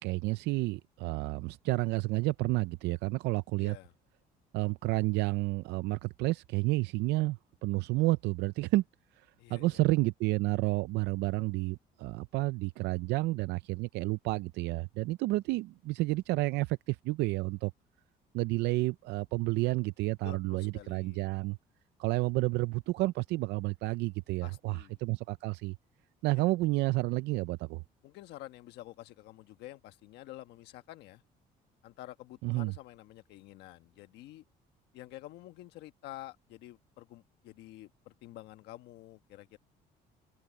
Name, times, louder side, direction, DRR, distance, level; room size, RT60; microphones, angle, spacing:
voice 1, 0.0-3.8 4.5-8.8 9.2-17.7 18.3-21.6 22.0-25.8 26.2-27.8 32.4-32.7, right 20 dB, 85° right, 0.5 m, -30 dB
voice 2, 3.6-3.9 9.4-9.8 20.2-21.3 24.4-25.0 28.0-31.2 31.8-34.4 34.9-39.6, left 15 dB, 85° left, 1.2 m, -49 dB
cardioid pair, 110°, 17 cm